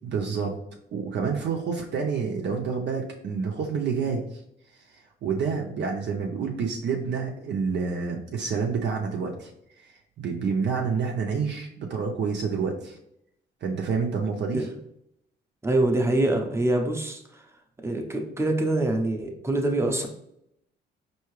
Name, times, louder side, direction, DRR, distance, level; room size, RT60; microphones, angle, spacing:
voice 1, 0.0-0.6 0.9-4.4 4.7-9.5 9.8-13.0 13.6-14.7, right 5 dB, 60° right, 1 dB, 0.6 m, -28 dB
voice 2, 15.6-17.4 17.8-20.1, right 1 dB, 15° right, 3 dB, 0.7 m, -25 dB
4.6 x 2.8 x 3.1 m, 0.75 s
cardioid pair, 90°, 20 cm